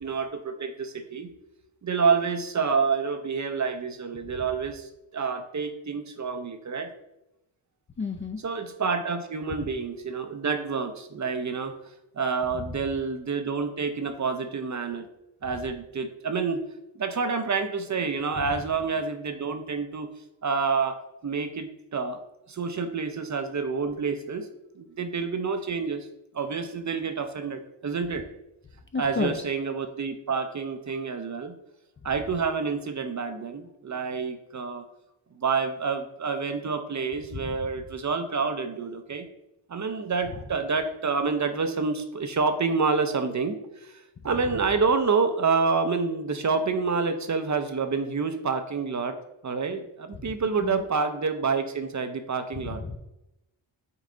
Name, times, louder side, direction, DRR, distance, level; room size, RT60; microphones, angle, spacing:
voice 1, 0.0-1.3 1.8-6.9 8.4-11.8 12.2-15.1 15.4-16.6 17.0-20.1 20.4-22.2 22.5-24.5 24.8-26.0 26.3-28.2 28.9-31.6 32.0-34.8 35.4-39.3 39.7-49.2 49.4-52.8, right 5 dB, 35° right, 8 dB, 0.5 m, -28 dB
voice 2, 8.0-8.4 28.9-29.4 37.3-37.6 50.2-50.3 50.6-50.8 52.6-53.0, left 4 dB, 25° left, 6 dB, 0.4 m, -31 dB
5.4 x 2.4 x 3.7 m, 0.90 s
cardioid pair, 45°, 50 cm